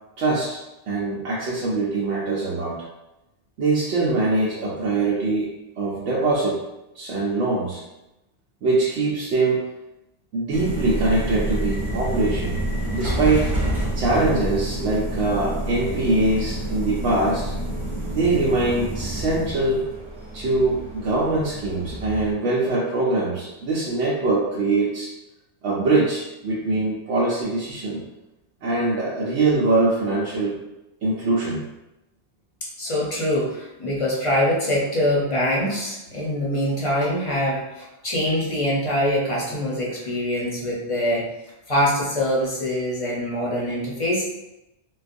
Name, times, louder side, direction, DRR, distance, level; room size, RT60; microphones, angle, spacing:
voice 1, 0.2-0.6 0.9-2.8 3.6-5.5 5.8-6.6 7.0-7.8 8.6-9.6 10.3-12.6 12.9-13.5 13.9-17.5 18.1-19.8 20.3-25.1 25.6-28.0 28.6-30.6 31.0-31.6, right 2 dB, 85° right, -6 dB, 1.0 m, -23 dB
sound 1, 10.5-22.3, right 1 dB, 30° right, 0.9 m, -28 dB
voice 2, 32.8-41.3 41.7-44.3, equal, 35° left, -5 dB, 0.7 m, -24 dB
3.9 x 2.3 x 2.5 m, 0.93 s
omnidirectional pair, 1.2 m